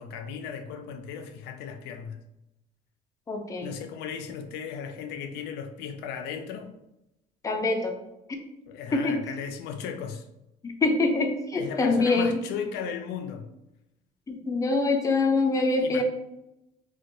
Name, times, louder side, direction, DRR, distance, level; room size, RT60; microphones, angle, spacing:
voice 1, 0.0-2.2 3.6-6.8 8.7-10.3 11.6-13.5 15.8-16.0, left 7 dB, 85° left, 6 dB, 0.4 m, -36 dB
voice 2, 3.3-3.7 7.4-8.0 8.9-9.2 10.6-12.4 14.3-16.0, left 3 dB, 20° left, 3 dB, 0.5 m, -25 dB
2.8 x 2.2 x 2.6 m, 0.89 s
cardioid pair, 110°, 17 cm